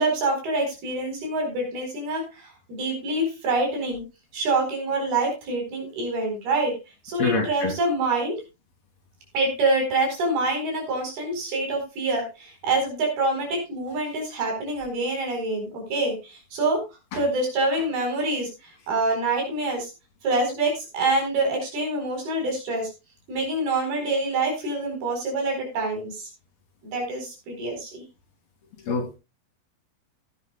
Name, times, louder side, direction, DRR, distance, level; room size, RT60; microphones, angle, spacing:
voice 1, 0.0-4.0 4.3-6.8 7.0-8.4 9.3-16.8 17.1-18.5 18.9-19.9 20.2-22.9 23.3-26.3 26.8-28.0, right 2 dB, 55° right, 2 dB, 6.2 m, -26 dB
voice 2, 7.2-7.7 28.9-29.2, left 4 dB, 60° left, 2 dB, 4.2 m, -25 dB
17.5 x 9.9 x 2.4 m, 0.26 s
omnidirectional pair, 5.3 m